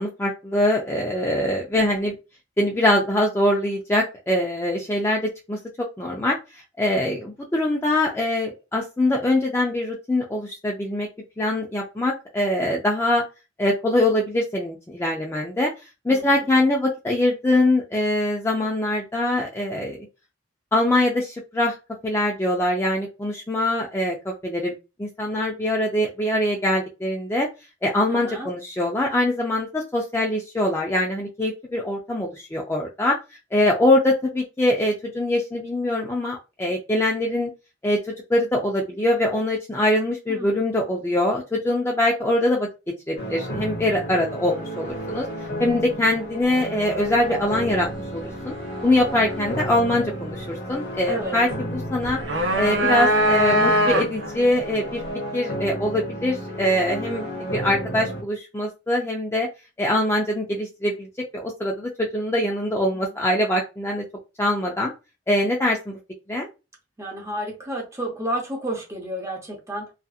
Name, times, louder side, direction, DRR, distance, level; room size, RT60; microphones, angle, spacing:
voice 1, 0.0-2.1 2.6-5.6 6.0-11.1 11.4-13.2 13.6-15.7 16.0-20.1 20.7-21.8 22.0-24.7 25.0-27.5 27.8-33.2 33.5-37.5 37.8-42.7 43.1-45.3 45.6-47.9 48.1-48.5 48.8-52.2 52.6-55.0 55.3-59.5 59.8-61.1 61.3-64.0 64.4-64.9 65.3-65.9 66.3-66.5, left 1 dB, 10° left, 0.3 m, -23 dB
voice 2, 28.1-28.5 40.3-40.6 51.1-51.4 67.0-69.9, right 1 dB, 15° right, 0.7 m, -31 dB
sound 1, 43.2-58.2, equal, 55° left, 0.8 m, -32 dB
sound 2, 52.0-54.4, equal, 70° right, 0.6 m, -20 dB
2.7 x 2.4 x 2.3 m
head